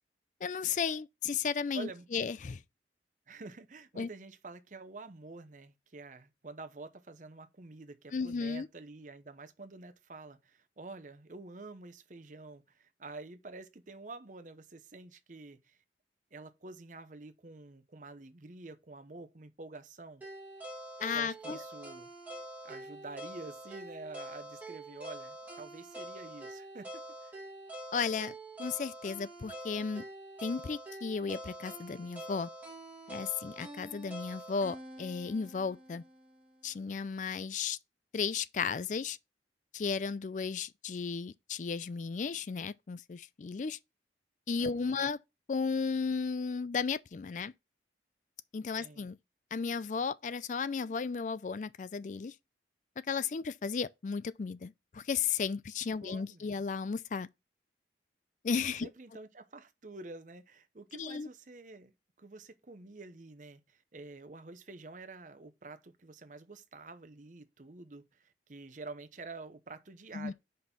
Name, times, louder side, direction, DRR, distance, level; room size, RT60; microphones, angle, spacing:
voice 1, 0.4-2.6 4.0-4.1 8.1-8.7 21.0-21.6 27.9-28.3 28.6-30.0 30.4-32.5 33.1-36.0 36.6-37.8 38.1-39.2 39.7-43.8 44.5-45.2 45.5-47.5 48.5-49.2 49.5-52.3 53.1-57.3 58.4-58.9 61.0-61.3 70.1-70.3, left 5 dB, 45° left, 0.3 m, -34 dB
voice 2, 1.7-2.1 3.3-15.8 16.3-20.2 21.1-22.1 22.6-27.4 44.6-45.0 48.8-49.1 56.0-56.6 58.8-70.3, right 3 dB, 45° right, 0.8 m, -48 dB
sound 1, 20.2-36.3, right 1 dB, 10° right, 1.9 m, -46 dB
5.2 x 4.2 x 5.8 m
head